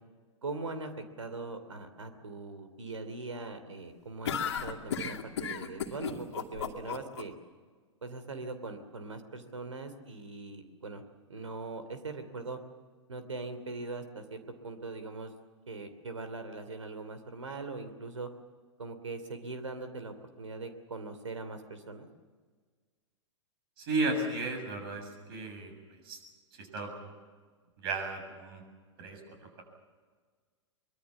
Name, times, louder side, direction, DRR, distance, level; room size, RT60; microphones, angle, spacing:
voice 1, 0.4-0.9 1.2-7.3 8.0-11.0 11.3-12.6 13.1-15.3 15.7-18.3 18.8-22.1, right 3 dB, 75° right, 10 dB, 2.9 m, -41 dB
sound 1, 4.2-7.2, left 7 dB, 60° left, 2.3 m, -34 dB
voice 2, 23.8-26.2 26.6-27.1 27.8-28.6 29.0-29.2, right 2 dB, 50° right, 4 dB, 7.3 m, -34 dB
24.0 x 22.5 x 7.2 m, 1.5 s
figure-of-eight pair, 105°, 16 cm